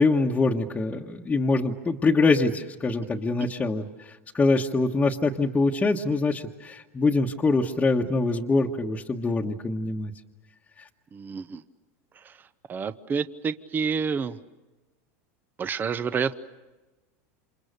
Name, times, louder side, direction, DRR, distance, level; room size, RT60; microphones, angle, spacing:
voice 1, 0.0-10.1, left 3 dB, 15° left, -2 dB, 1.4 m, -24 dB
voice 2, 11.1-11.6 12.2-12.3 12.7-14.4 15.6-16.4, right 6 dB, 25° right, 13 dB, 0.9 m, -28 dB
28.5 x 26.5 x 6.7 m, 1.2 s
supercardioid pair, 115°, 8 cm